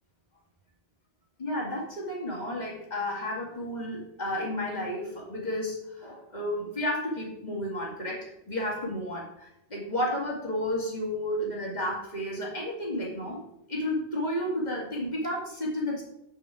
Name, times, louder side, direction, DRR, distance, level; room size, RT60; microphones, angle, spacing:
voice 1, 1.4-13.4 13.7-16.0, left 1 dB, 40° left, -3 dB, 2.4 m, -32 dB
7.7 x 5.7 x 4.9 m, 0.85 s
omnidirectional pair, 1.1 m